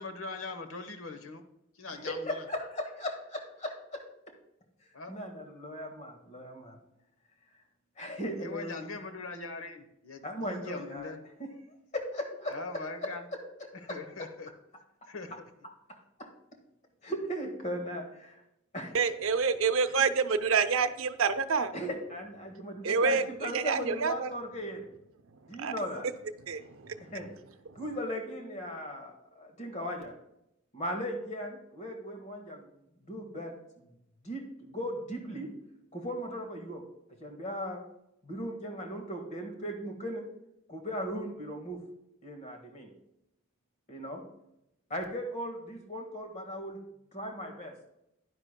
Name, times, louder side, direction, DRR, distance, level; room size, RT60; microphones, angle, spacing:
voice 1, 0.0-1.4 1.8-2.4 4.9-5.1 8.4-11.2 12.5-13.3 13.8-14.5 15.1-15.4, left 3 dB, 80° left, 8 dB, 1.0 m, -41 dB
voice 2, 1.9-4.0 5.1-6.8 8.0-9.0 10.2-12.6 13.0-13.1 13.6-14.0 15.9-16.3 17.0-18.4 18.7-19.0 21.7-24.9 25.5-26.1 27.1-27.3 27.8-30.2 30.7-32.6 33.0-33.9 34.2-35.5 35.9-36.8 37.1-37.8 38.2-40.3 40.7-41.8 42.2-42.9 43.9-44.2 44.9-46.8 47.1-47.7, equal, 35° left, 3 dB, 1.6 m, -38 dB
voice 3, 18.9-21.7 22.8-24.3 25.6-25.7 26.4-27.2, right 5 dB, 75° right, 9 dB, 0.6 m, -28 dB
10.5 x 10.0 x 2.2 m, 0.82 s
head